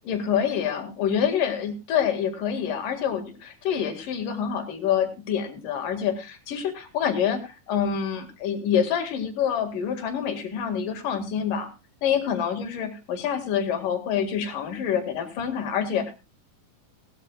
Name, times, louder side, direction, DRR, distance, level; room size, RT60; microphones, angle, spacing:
voice 1, 0.1-11.7 12.0-16.1, left 8 dB, 85° left, 6 dB, 3.6 m, -26 dB
19.0 x 13.0 x 2.3 m, 0.27 s
omnidirectional pair, 3.7 m